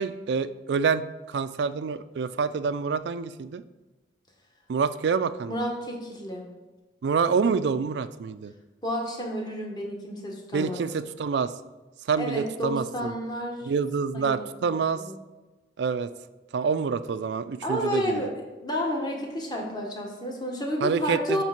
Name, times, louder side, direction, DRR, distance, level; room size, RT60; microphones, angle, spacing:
voice 1, 0.0-3.6 4.7-5.6 7.0-8.5 10.5-11.5 12.1-13.1 13.7-15.0 15.8-16.1 16.5-18.2 20.8-21.4, right 5 dB, 70° right, 13 dB, 0.3 m, -27 dB
voice 2, 5.5-6.4 8.8-10.8 12.2-13.7 14.1-15.1 17.6-18.3 18.6-21.4, equal, 25° left, 0 dB, 1.2 m, -31 dB
7.4 x 3.3 x 5.8 m, 1.2 s
head